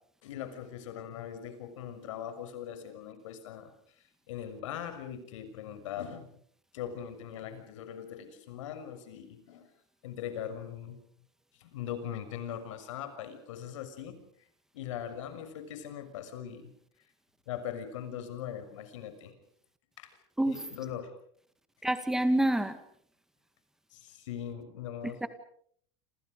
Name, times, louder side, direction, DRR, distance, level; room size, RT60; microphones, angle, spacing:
voice 1, 0.2-3.7 4.3-6.3 6.7-9.7 10.0-11.0 11.6-14.2 14.7-16.7 17.5-19.3 20.0-20.1 20.5-21.1 23.9-25.2, left 9 dB, 80° left, 9 dB, 6.2 m, -40 dB
voice 2, 21.8-22.8 25.0-25.3, right 1 dB, 5° right, 10 dB, 1.8 m, -27 dB
28.5 x 28.0 x 5.2 m, 0.62 s
supercardioid pair, 160°, 16 cm